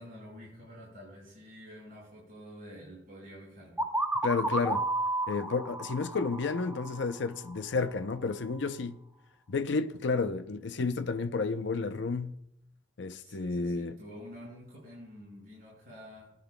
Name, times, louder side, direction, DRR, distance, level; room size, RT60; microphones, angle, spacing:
voice 1, 0.0-3.9 13.2-16.4, equal, 50° right, 5.1 m, -48 dB
sound 1, 3.8-7.5, right 1 dB, 10° right, 0.9 m, -32 dB
voice 2, 4.2-4.8 5.3-9.0 9.5-12.3 13.0-14.0, left 4 dB, 70° left, 0.6 m, -31 dB
19.0 x 9.8 x 2.2 m
head